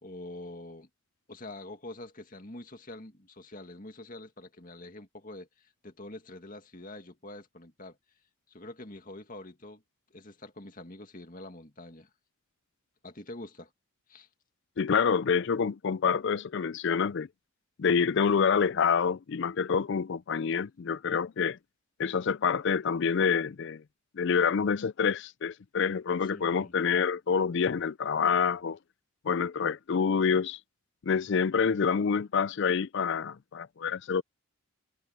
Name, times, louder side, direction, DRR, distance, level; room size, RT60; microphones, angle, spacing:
voice 1, 0.0-0.9 1.3-8.0 8.5-9.8 10.1-12.1 13.0-13.7 14.1-14.3 26.2-26.8, left 2 dB, 35° left, 2.1 m, -45 dB
voice 2, 14.8-17.3 17.8-21.6 22.0-23.8 24.1-28.8 29.2-30.6 31.0-34.2, left 6 dB, 55° left, 0.4 m, -27 dB
head